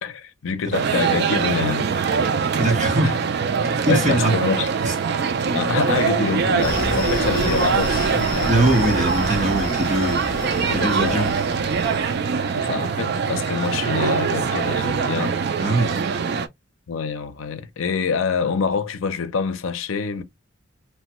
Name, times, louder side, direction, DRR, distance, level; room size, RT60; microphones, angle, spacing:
voice 1, 0.0-1.9 3.0-3.2 3.9-4.7 5.5-8.5 10.7-11.3 12.6-15.4 16.9-20.2, left 5 dB, 80° left, 0.5 m, -26 dB
sound 1, 0.7-16.5, right 5 dB, 55° right, 0.4 m, -23 dB
voice 2, 2.6-3.1 3.8-4.3 4.9-5.0 8.5-10.2 10.7-11.3 15.6-16.0, right 1 dB, 35° right, 1.2 m, -21 dB
Screaming, 6.6-12.2, left 2 dB, 45° left, 0.8 m, -30 dB
3.1 x 2.2 x 2.9 m
head